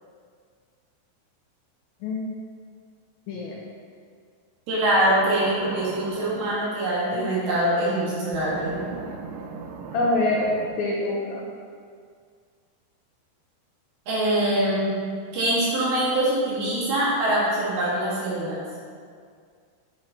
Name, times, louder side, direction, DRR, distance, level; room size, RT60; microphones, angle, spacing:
voice 1, 4.7-8.8 14.1-15.0 15.3-18.6, right 1 dB, 65° right, -7 dB, 3.1 m, -24 dB
sound 1, 5.2-6.6 8.3-10.7, right 5 dB, 80° right, 2.9 m, -38 dB
voice 2, 9.9-10.5 10.8-11.4, left 2 dB, 90° left, -3 dB, 2.0 m, -25 dB
8.6 x 5.6 x 3.9 m, 2.1 s
omnidirectional pair, 5.3 m